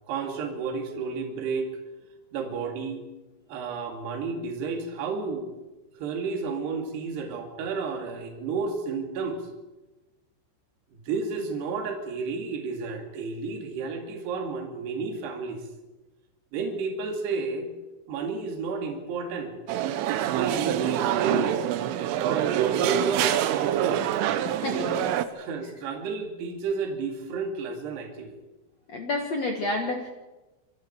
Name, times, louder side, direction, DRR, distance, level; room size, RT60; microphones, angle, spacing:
voice 1, 0.1-1.7 2.3-3.0 3.5-5.4 6.0-9.4 10.9-15.6 16.5-17.7 18.1-19.6 20.3-21.6 22.3-24.1 25.3-28.4, right 4 dB, 60° right, 2 dB, 4.3 m, -31 dB
sound 1, 19.7-25.2, right 12 dB, 80° right, 3.5 m, -26 dB
voice 2, 24.4-25.2 28.9-30.1, left 2 dB, 65° left, 2 dB, 1.6 m, -30 dB
27.0 x 23.5 x 4.6 m, 1.1 s
omnidirectional pair, 5.8 m